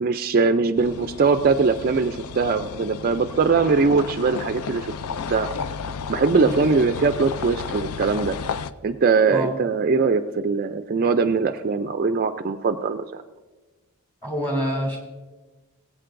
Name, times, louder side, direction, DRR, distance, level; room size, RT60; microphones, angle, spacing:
voice 1, 0.0-4.9 5.3-5.5 6.1-8.4 8.8-13.2, right 4 dB, 40° right, 8 dB, 0.4 m, -21 dB
sound 1, 0.8-8.7, left 6 dB, 80° left, 0.4 m, -33 dB
voice 2, 14.2-15.0, equal, 10° left, -1 dB, 2.4 m, -26 dB
21.0 x 8.4 x 2.5 m, 1.2 s
head